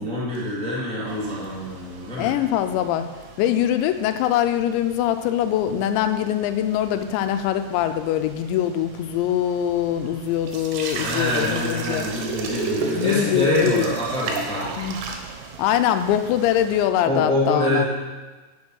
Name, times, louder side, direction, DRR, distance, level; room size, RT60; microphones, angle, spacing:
voice 1, 0.0-2.3 11.0-14.8 17.0-17.8, left 1 dB, 5° left, -8 dB, 0.5 m, -25 dB
sound 1, 1.1-16.9, right 4 dB, 80° right, 3.3 m, -35 dB
voice 2, 2.2-3.1 3.4-12.1 12.8-13.9 14.8-15.0 15.6-17.8, left 10 dB, 90° left, 9 dB, 2.9 m, -23 dB
9.6 x 6.4 x 6.2 m, 1.3 s
omnidirectional pair, 5.1 m